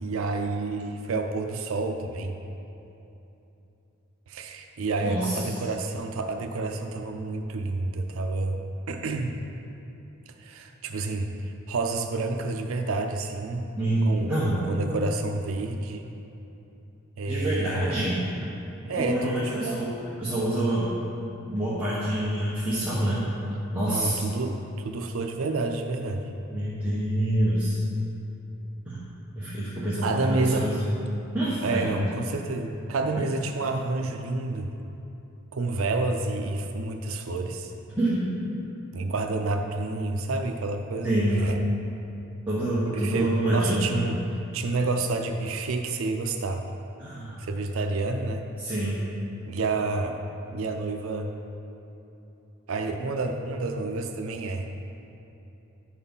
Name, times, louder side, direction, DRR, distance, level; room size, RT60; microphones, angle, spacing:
voice 1, 0.0-2.4 4.3-8.6 8.9-9.3 10.4-11.3 11.7-13.6 14.0-16.0 17.2-18.1 18.9-19.8 23.9-26.3 30.0-30.7 31.6-34.7 35.5-37.7 38.9-41.6 42.9-44.2 44.5-46.6 47.4-48.4 49.5-50.2 50.5-51.3 52.7-54.8, right 3 dB, 75° right, 4 dB, 0.5 m, -29 dB
voice 2, 5.0-5.7 13.8-14.6 17.3-18.2 18.9-20.9 21.5-23.3 23.7-24.3 26.5-27.8 28.9-29.0 29.4-30.8 31.3-32.0 33.1-33.2 38.0-38.3 41.0-41.5 42.5-44.0 47.0-47.4 48.6-49.0, right 1 dB, 10° right, -10 dB, 1.2 m, -26 dB
10.5 x 4.2 x 5.5 m, 2.9 s
head